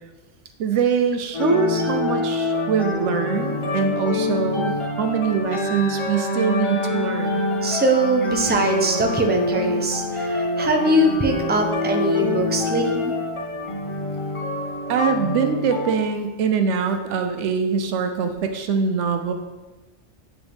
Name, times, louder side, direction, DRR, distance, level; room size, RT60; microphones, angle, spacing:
voice 1, 0.6-7.5 14.9-19.3, right 5 dB, 80° right, 6 dB, 1.0 m, -23 dB
sound 1, 1.3-15.9, left 2 dB, 30° left, 0.7 m, -26 dB
voice 2, 7.6-13.1, right 1 dB, 15° right, 2 dB, 0.3 m, -21 dB
9.2 x 3.5 x 3.4 m, 1.1 s
omnidirectional pair, 1.2 m